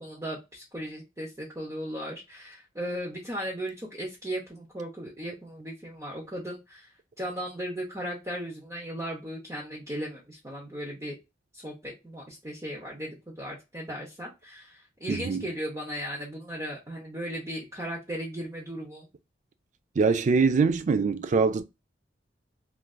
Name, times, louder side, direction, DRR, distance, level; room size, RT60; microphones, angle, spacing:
voice 1, 0.0-6.9 7.2-11.1 11.5-19.1, equal, 20° right, 0.7 m, -36 dB
voice 2, 15.1-15.4 20.0-21.6, right 4 dB, 40° right, 0.4 m, -23 dB
3.1 x 2.5 x 2.3 m
head